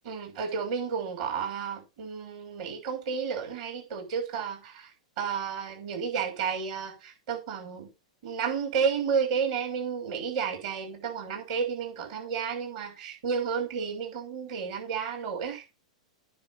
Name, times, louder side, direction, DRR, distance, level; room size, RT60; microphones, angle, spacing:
voice 1, 0.0-4.9 5.2-7.9 8.2-15.8, right 6 dB, 60° right, 6.3 m, -32 dB
9.6 x 6.8 x 5.7 m
hypercardioid pair, 105°, 4 cm